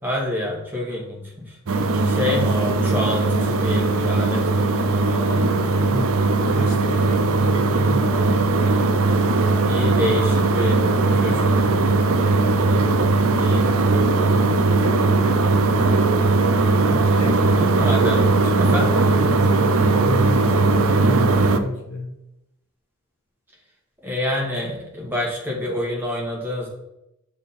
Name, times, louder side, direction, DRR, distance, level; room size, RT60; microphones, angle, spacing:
voice 1, 0.0-1.6 2.0-5.5 9.6-11.7 12.8-13.6 14.2-14.4 17.5-18.2 18.6-18.9 24.0-26.7, left 1 dB, 10° right, -3 dB, 1.5 m, -27 dB
sound 1, 1.7-21.6, right 3 dB, 70° right, 0.5 m, -19 dB
voice 2, 5.0-6.1 6.4-8.5 10.0-11.4 16.7-17.4 17.8-22.1, equal, 80° left, 3 dB, 1.2 m, -31 dB
7.2 x 3.6 x 4.2 m, 0.88 s
head